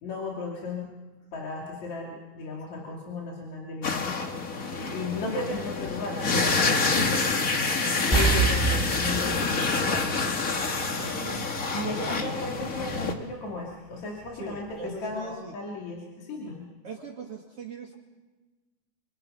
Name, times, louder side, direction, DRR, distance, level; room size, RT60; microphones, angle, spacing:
voice 1, 0.0-0.9 1.3-4.2 4.9-6.4 6.9-7.3 7.6-9.6 9.9-10.2 10.5-10.7 11.7-16.6, left 3 dB, 65° left, -2 dB, 4.0 m, -35 dB
sound 1, 3.8-13.1, left 4 dB, 35° left, 1.5 m, -27 dB
voice 2, 4.6-5.0 10.8-11.5 11.9-12.3 14.4-15.5 16.8-17.9, right 3 dB, 50° right, 0 dB, 2.9 m, -40 dB
sound 2, 8.1-10.9 11.2-11.4 14.3-14.4 14.7-14.8, right 4 dB, 10° right, 1.3 m, -27 dB
28.0 x 27.0 x 5.6 m, 1.2 s
omnidirectional pair, 3.6 m